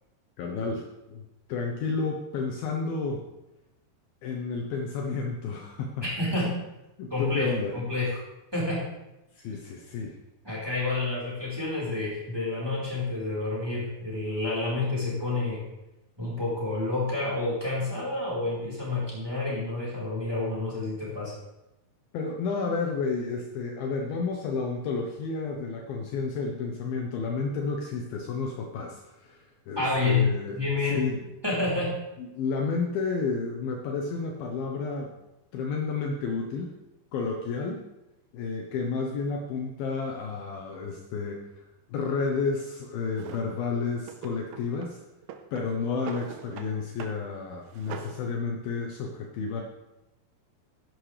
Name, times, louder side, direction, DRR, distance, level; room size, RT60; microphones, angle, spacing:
voice 1, 0.4-1.2 1.5-3.2 4.2-6.0 6.4-6.5 7.0-7.8 9.4-10.2 22.1-30.6 30.9-31.2 32.2-35.1 35.5-36.8 37.1-37.8 38.3-41.4 41.9-45.0 45.5-49.6, left 4 dB, 70° left, 1 dB, 2.6 m, -31 dB
voice 2, 6.0-6.5 7.1-8.2 8.5-8.8 10.4-15.6 16.2-21.3 29.8-30.2 30.5-31.0 31.4-31.9, left 3 dB, 5° right, -5 dB, 3.9 m, -29 dB
Drawer open or close, 43.2-43.5 44.0-44.9 45.2-46.7 47.0-47.2 47.5-48.2, right 8 dB, 85° right, 3.0 m, -42 dB
14.0 x 11.0 x 3.3 m, 0.94 s
omnidirectional pair, 4.8 m